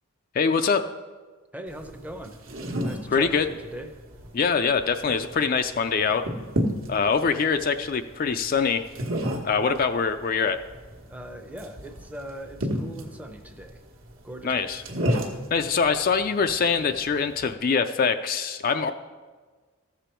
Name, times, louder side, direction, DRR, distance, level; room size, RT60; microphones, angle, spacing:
voice 1, 0.3-0.9 3.1-3.5 4.3-6.3 6.9-8.9 9.4-10.6 14.4-14.8 15.5-18.9, left 5 dB, 40° left, 8 dB, 0.3 m, -24 dB
voice 2, 1.5-2.4 2.8-4.0 11.1-13.8 14.2-14.7, right 1 dB, 5° right, 6 dB, 0.6 m, -40 dB
sound 1, 1.7-17.5, equal, 75° right, 1.3 m, -33 dB
14.0 x 6.9 x 4.4 m, 1.4 s
head